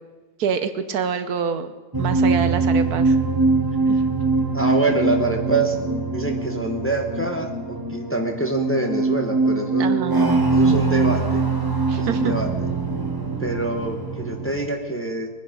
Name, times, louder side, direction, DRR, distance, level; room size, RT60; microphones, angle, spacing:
voice 1, 0.4-1.7 2.0-3.2 3.9-4.0 9.8-10.3 11.9-12.3, right 7 dB, 70° right, 10 dB, 1.2 m, -26 dB
sound 1, 1.9-14.7, right 3 dB, 15° right, 1.3 m, -22 dB
voice 2, 4.5-5.8 6.1-11.4 11.9-12.5 13.4-15.3, right 2 dB, 10° left, 3 dB, 1.2 m, -25 dB
22.0 x 10.0 x 5.3 m, 1.3 s
omnidirectional pair, 1.8 m